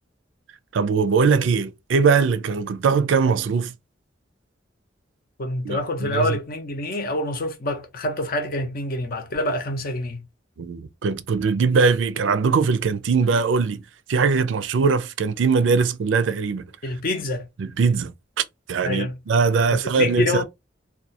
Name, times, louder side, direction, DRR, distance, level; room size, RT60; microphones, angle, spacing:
voice 1, 0.7-3.7 5.6-6.4 10.6-13.8 14.1-16.7 17.6-18.1 18.7-20.4, right 5 dB, 90° right, 0.4 m, -21 dB
voice 2, 5.4-10.2 16.8-17.5 18.8-19.2 19.7-20.4, left 1 dB, 50° left, 0.6 m, -26 dB
2.4 x 2.2 x 2.7 m
head